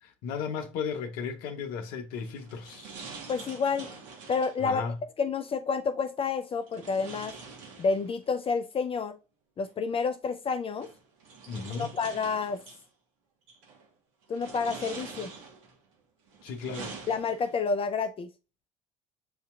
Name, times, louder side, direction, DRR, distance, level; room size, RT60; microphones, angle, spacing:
voice 1, 0.0-2.9 4.6-5.0 11.5-11.9 16.4-16.9, left 6 dB, 70° left, 0.7 m, -35 dB
sound 1, 2.1-4.6 6.7-8.3 9.7-9.8 10.8-12.8 13.5-13.9 14.3-15.8 16.3-17.7, right 4 dB, 80° right, 1.2 m, -45 dB
voice 2, 3.3-3.9 4.3-4.8 5.2-7.3 7.8-9.2 9.6-10.9 11.8-12.6 14.3-15.3 17.1-18.3, left 5 dB, 35° left, 0.5 m, -29 dB
7.8 x 2.8 x 2.3 m
hypercardioid pair, 65°, 16 cm